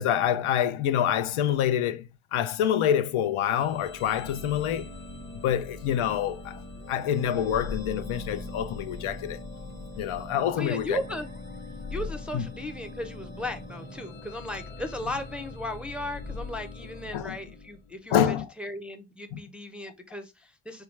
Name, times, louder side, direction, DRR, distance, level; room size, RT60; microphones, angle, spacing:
voice 1, 0.0-4.9 5.4-6.6 6.9-9.4 10.0-11.0 12.3-12.5 17.1-17.4 18.1-18.5 19.3-19.4, left 10 dB, 80° left, 0.6 m, -26 dB
sound 1, 3.4-18.1, left 2 dB, 20° left, 0.8 m, -41 dB
voice 2, 10.6-11.3 11.9-20.8, left 1 dB, ahead, 0.5 m, -36 dB
4.4 x 2.3 x 3.1 m
cardioid pair, 90°, 49 cm